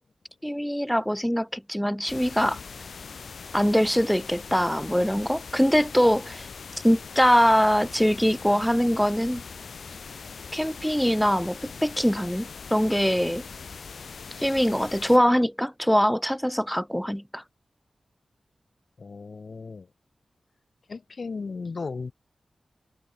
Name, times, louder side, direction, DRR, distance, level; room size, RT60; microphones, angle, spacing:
voice 1, 0.4-2.6 3.5-6.5 6.8-9.4 10.5-13.4 14.4-17.4, equal, 5° left, 1.2 m, -23 dB
sound 1, 2.1-15.2, left 5 dB, 80° left, 5.8 m, -41 dB
voice 2, 19.0-19.9 20.9-22.1, left 4 dB, 60° left, 1.8 m, -36 dB
cardioid pair, 60°, 0 cm